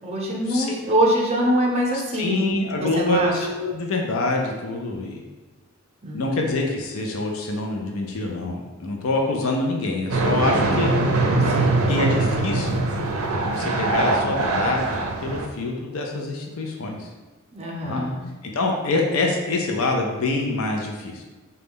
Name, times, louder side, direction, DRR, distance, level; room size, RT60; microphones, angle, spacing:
voice 1, 0.0-2.5 2.8-3.3 6.0-6.3 11.4-12.2 17.5-18.2, equal, 30° right, -1 dB, 0.6 m, -24 dB
voice 2, 1.9-5.2 6.1-10.9 11.9-12.9 13.4-17.1 17.8-18.0 18.4-21.2, left 2 dB, 80° left, 1 dB, 0.5 m, -26 dB
sound 1, 10.1-15.5, right 2 dB, 85° right, 0.5 m, -22 dB
3.9 x 2.3 x 3.6 m, 1.2 s
head